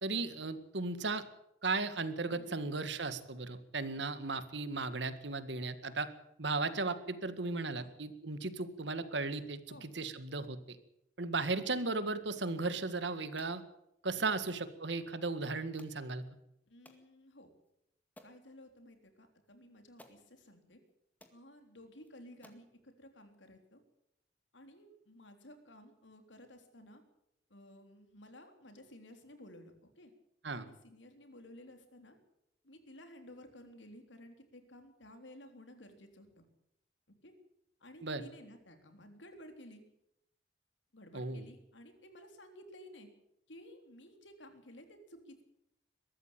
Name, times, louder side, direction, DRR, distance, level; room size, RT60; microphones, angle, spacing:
voice 1, 0.0-1.2 1.6-6.1 6.4-10.8 11.2-13.6 14.0-16.2 30.4-30.7 38.0-38.2 41.1-41.5, right 3 dB, 75° right, 12 dB, 1.9 m, -36 dB
voice 2, 2.3-2.6 3.9-4.0 7.7-8.0 9.7-9.9 16.7-17.5 18.2-20.8 21.3-23.8 24.5-27.0 27.5-30.1 30.5-32.2 32.6-36.4 37.2-37.3 37.8-39.8 40.9-43.1 43.5-45.4, left 1 dB, 90° left, 6 dB, 3.8 m, -55 dB
sound 1, 13.4-13.6 14.5-14.7 15.8-16.0 16.8-17.0 17.6-17.7 18.2-18.4 19.4-19.5 20.0-20.2 20.9-21.0 21.2-21.4 22.0-22.1 22.4-22.7, left 1 dB, 10° left, 2.0 m, -59 dB
22.5 x 13.5 x 9.1 m, 0.81 s
head